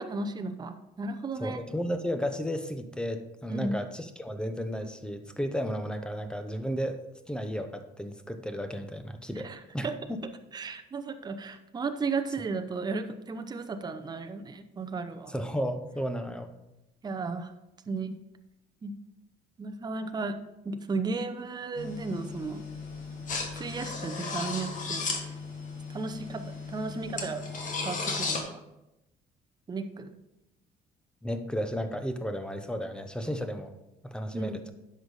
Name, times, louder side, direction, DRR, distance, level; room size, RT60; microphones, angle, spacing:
voice 1, 0.0-1.6 3.5-3.8 9.4-10.0 10.5-15.3 17.0-17.5 17.9-18.1 18.8-18.9 19.6-20.4 20.6-22.6 23.5-25.3 25.9-27.4 27.8-28.6 29.7-30.2 34.3-34.6, right 4 dB, 25° right, 7 dB, 0.7 m, -34 dB
voice 2, 1.4-7.0 7.3-10.2 15.3-16.5 31.2-33.7 34.0-34.7, equal, 5° left, 8 dB, 0.9 m, -33 dB
sound 1, 21.8-28.4, left 4 dB, 50° left, 1.9 m, -35 dB
10.0 x 6.5 x 4.0 m, 0.92 s
cardioid pair, 110°, 17 cm